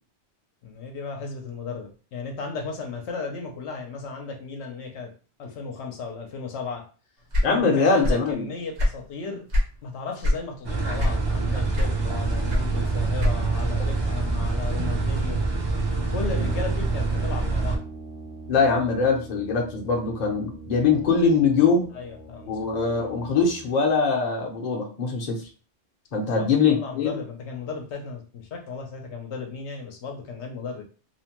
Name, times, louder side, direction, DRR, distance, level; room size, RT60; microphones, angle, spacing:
voice 1, 0.6-5.1 5.4-6.9 7.5-9.4 9.8-15.4 15.8-17.8 21.9-22.9 26.3-30.8, left 4 dB, 75° left, 2 dB, 0.9 m, -35 dB
sound 1, 7.3-8.3 8.6-9.8 10.2-10.5 11.0-11.4 11.7-13.6, left 1 dB, 80° right, 1.3 m, -23 dB
voice 2, 7.4-8.5 18.5-21.9 22.5-25.4 26.1-27.2, left 5 dB, 45° left, 0 dB, 0.7 m, -22 dB
sound 2, 10.6-17.8, right 3 dB, 30° right, 0.5 m, -25 dB
Brass instrument, 16.3-23.7, right 2 dB, 60° right, 0.9 m, -41 dB
2.8 x 2.1 x 2.9 m, 0.37 s
omnidirectional pair, 1.2 m